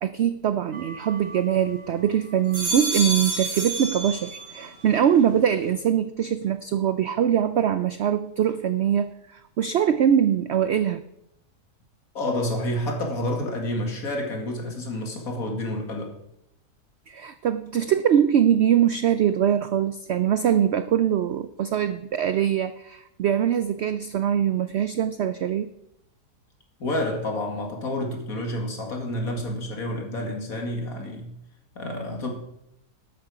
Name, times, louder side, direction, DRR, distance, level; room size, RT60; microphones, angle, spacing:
voice 1, 0.0-11.0 17.1-25.7, right 9 dB, 80° right, 12 dB, 0.6 m, -23 dB
sound 1, 0.7-1.9 2.3-4.7 5.1-5.7, right 2 dB, 55° right, 2.9 m, -31 dB
voice 2, 12.1-16.1 26.8-31.3 31.8-32.3, left 1 dB, 60° left, 1 dB, 2.4 m, -29 dB
12.0 x 8.8 x 4.9 m, 0.81 s
omnidirectional pair, 1.7 m